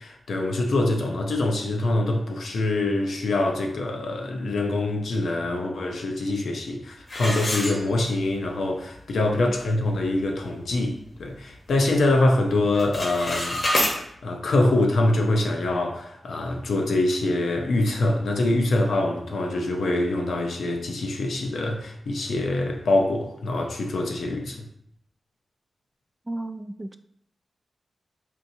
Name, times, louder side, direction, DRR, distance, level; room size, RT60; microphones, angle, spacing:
voice 1, 0.0-13.9 14.2-24.6, left 2 dB, 85° left, 0.6 m, -24 dB
sound 1, 7.1-8.3 8.8-8.9 9.5-9.6 9.9-10.2 10.7-11.8 12.1-12.4 12.7-14.0, left 1 dB, 60° left, 1.0 m, -28 dB
voice 2, 26.3-27.0, right 1 dB, 25° right, 0.3 m, -33 dB
4.4 x 2.6 x 2.7 m
cardioid pair, 50°, 0 cm